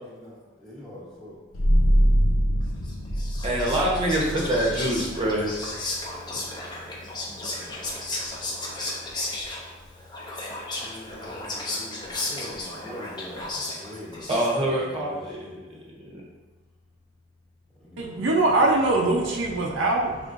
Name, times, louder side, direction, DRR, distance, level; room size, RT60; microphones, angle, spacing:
voice 1, 0.0-1.4 6.8-7.0 7.3-7.8 8.3-8.9 10.8-14.3 15.0-15.9 17.8-18.3, left 1 dB, 5° left, -7 dB, 1.1 m, -44 dB
sound 1, 1.5-12.8, equal, 85° left, 0.6 m, -28 dB
Whispering, 2.9-14.8, left 2 dB, 20° left, 0.6 m, -34 dB
voice 2, 3.4-5.5 14.3-15.5 16.0-16.1, right 1 dB, 25° right, -3 dB, 0.8 m, -25 dB
voice 3, 18.0-20.2, right 2 dB, 60° right, -1 dB, 0.5 m, -22 dB
5.2 x 3.4 x 2.5 m, 1.2 s
head